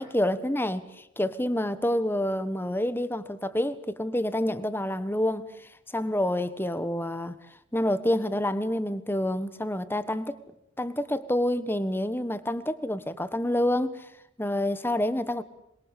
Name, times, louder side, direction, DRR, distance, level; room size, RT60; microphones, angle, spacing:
voice 1, 0.0-5.5 5.9-7.4 7.7-10.4 10.8-14.1 14.4-15.4, left 1 dB, 10° left, 1.3 m, -28 dB
27.0 x 22.0 x 8.4 m
head